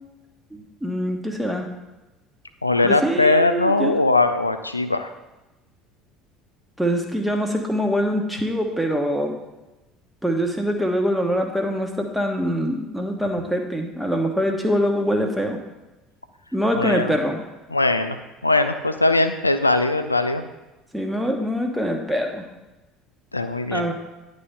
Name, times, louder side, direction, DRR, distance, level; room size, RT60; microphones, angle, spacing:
voice 1, 0.5-1.7 2.8-4.0 6.8-9.3 10.2-15.6 16.5-17.4 20.9-22.5 23.7-23.9, equal, 5° right, 3 dB, 1.1 m, -24 dB
voice 2, 2.6-5.1 16.7-17.1 17.7-18.2 18.4-20.4 23.3-23.8, left 2 dB, 85° left, 9 dB, 0.4 m, -20 dB
9.8 x 3.5 x 5.5 m, 1.1 s
figure-of-eight pair, 60°, 0 cm